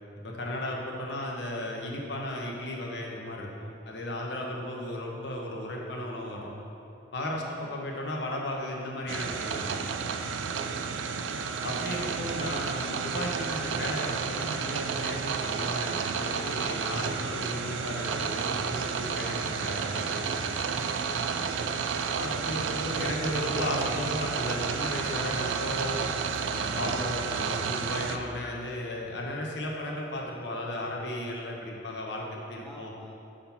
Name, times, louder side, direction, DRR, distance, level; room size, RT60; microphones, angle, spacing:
voice 1, 0.2-6.5 7.1-9.9 11.6-20.7 22.1-26.1 26.5-32.9, left 1 dB, 65° left, -1 dB, 0.9 m, -35 dB
voice 2, 7.4-7.8 10.9-11.2 21.6-22.0 32.6-33.1, left 1 dB, ahead, -1 dB, 0.4 m, -49 dB
sound 1, 9.1-28.2, right 6 dB, 90° right, 0.4 m, -31 dB
5.8 x 3.7 x 5.7 m, 2.8 s
head